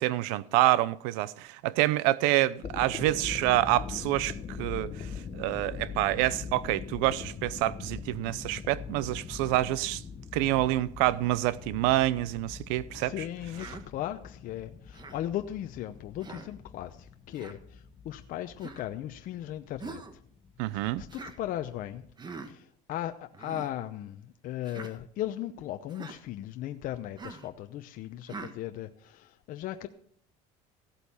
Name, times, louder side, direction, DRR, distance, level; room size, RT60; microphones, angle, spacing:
voice 1, 0.0-5.1 5.3-10.0 10.3-13.3 13.5-13.7 20.6-21.0, right 16 dB, 80° right, 0.7 m, -27 dB
sound 1, 2.5-22.1, left 6 dB, 40° left, 1.3 m, -43 dB
voice 2, 13.0-13.7 13.9-14.7 15.1-16.9 17.3-17.6 18.1-20.0 21.0-22.0 22.9-23.1 23.4-24.1 24.4-28.9 29.5-29.9, left 12 dB, 55° left, 0.8 m, -36 dB
Human voice, 13.5-13.8 14.9-15.2 16.2-16.5 17.3-17.6 18.6-18.9 19.8-20.1 21.1-21.4 22.2-22.5 23.3-23.7 24.6-24.9 25.9-26.2 27.2-27.5 28.3-28.6, right 4 dB, 25° right, 1.4 m, -43 dB
15.5 x 8.1 x 5.6 m
supercardioid pair, 100°, 17 cm